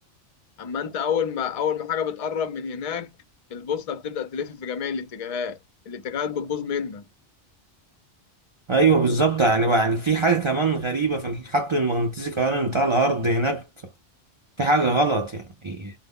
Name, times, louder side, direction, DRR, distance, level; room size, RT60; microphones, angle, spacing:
voice 1, 0.6-3.2 3.5-5.6 5.9-7.0, left 7 dB, 45° left, 0.5 m, -29 dB
voice 2, 8.7-13.6 14.6-15.9, right 3 dB, 50° right, 0.3 m, -22 dB
2.0 x 2.0 x 3.6 m
omnidirectional pair, 1.2 m